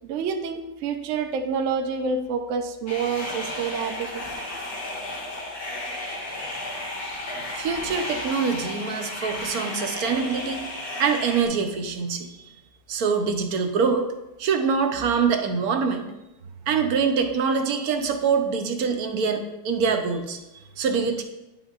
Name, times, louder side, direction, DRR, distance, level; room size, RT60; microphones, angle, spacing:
voice 1, 0.0-4.2, right 5 dB, 80° right, 4 dB, 0.6 m, -28 dB
sound 1, 2.9-11.5, left 1 dB, 60° left, 1.8 m, -33 dB
voice 2, 7.5-10.6 11.0-12.3 12.9-14.1 14.4-16.1 16.7-20.4 20.8-21.2, right 5 dB, 65° right, 5 dB, 1.0 m, -24 dB
9.5 x 5.3 x 2.4 m, 0.96 s
omnidirectional pair, 1.9 m